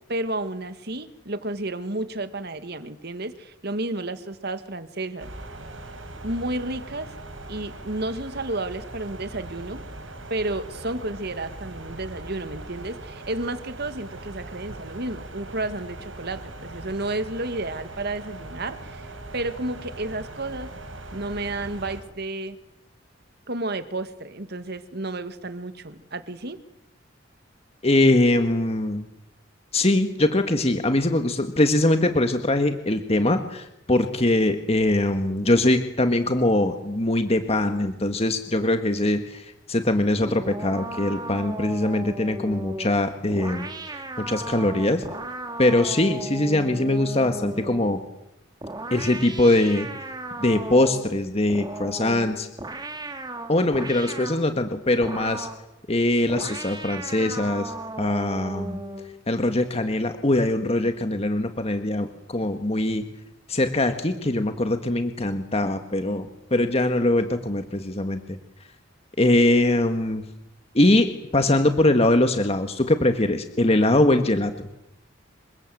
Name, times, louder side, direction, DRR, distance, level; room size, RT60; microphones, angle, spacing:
voice 1, 0.1-5.3 6.2-7.1 7.5-9.8 10.3-19.1 19.3-20.7 21.1-22.6 23.5-26.6, right 2 dB, 55° right, 10 dB, 2.0 m, -31 dB
sound 1, 5.2-22.0, right 2 dB, 90° right, 5.4 m, -40 dB
voice 2, 27.8-29.0 29.7-45.0 45.6-48.0 48.9-49.9 50.4-52.5 53.5-55.5 55.9-58.8 59.3-63.0 63.5-68.2 69.2-70.2 70.7-74.5, left 1 dB, 30° left, 7 dB, 1.6 m, -22 dB
sound 2, 40.2-48.0 48.6-51.1 51.5-54.5 55.0-55.7 56.3-59.1, right 2 dB, 20° right, 2.5 m, -36 dB
27.5 x 24.5 x 7.9 m, 0.83 s
head